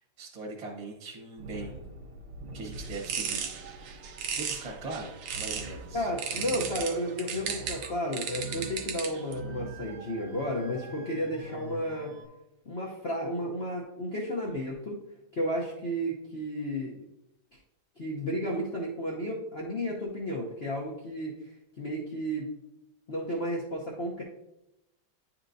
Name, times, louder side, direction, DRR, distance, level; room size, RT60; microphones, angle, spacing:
voice 1, 0.0-1.8 2.5-3.5 4.4-6.1, right 3 dB, 25° right, -1 dB, 0.9 m, -40 dB
sound 1, 1.4-12.2, right 2 dB, 65° right, 1.6 m, -44 dB
sound 2, 2.7-5.8 6.2-9.3, right 7 dB, 85° right, 1.6 m, -35 dB
voice 2, 5.9-12.1 12.7-15.0 15.3-16.9 18.0-21.5 21.8-22.5 23.1-24.2, equal, 70° left, -3 dB, 0.5 m, -32 dB
10.0 x 4.3 x 2.6 m, 0.88 s
omnidirectional pair, 2.3 m